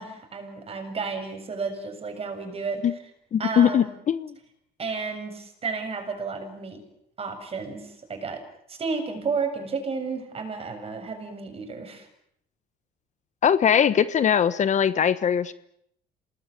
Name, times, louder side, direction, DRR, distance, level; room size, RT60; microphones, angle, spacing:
voice 1, 0.0-2.8 3.4-4.0 4.8-6.8 7.2-8.4 8.7-12.1, right 4 dB, 35° right, 6 dB, 7.3 m, -32 dB
voice 2, 3.3-4.4 13.4-15.5, left 8 dB, 45° left, 14 dB, 1.3 m, -21 dB
28.5 x 20.0 x 9.8 m, 0.73 s
cardioid pair, 110°, 17 cm